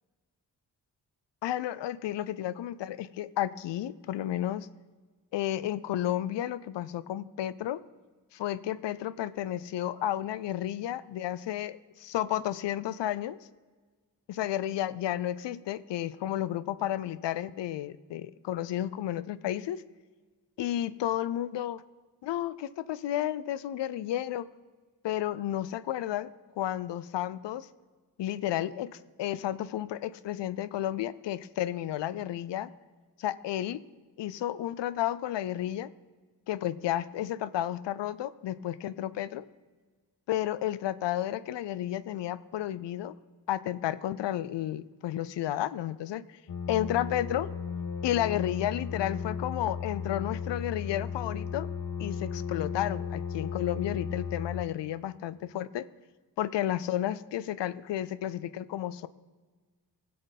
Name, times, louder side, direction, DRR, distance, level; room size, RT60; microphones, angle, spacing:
voice 1, 1.4-4.7 5.3-7.8 8.3-13.4 14.3-19.8 20.6-21.8 22.2-24.5 25.0-26.3 26.6-27.7 28.2-32.7 33.2-33.8 34.2-35.9 36.5-39.4 40.3-43.1 43.5-46.2 46.7-47.5 48.0-51.7 52.0-55.9 56.4-59.1, left 12 dB, 85° left, 16 dB, 0.5 m, -32 dB
sound 1, 46.5-54.6, left 6 dB, 55° left, 0.8 m, -35 dB
16.5 x 7.8 x 4.0 m, 1.4 s
cardioid pair, 65°, 41 cm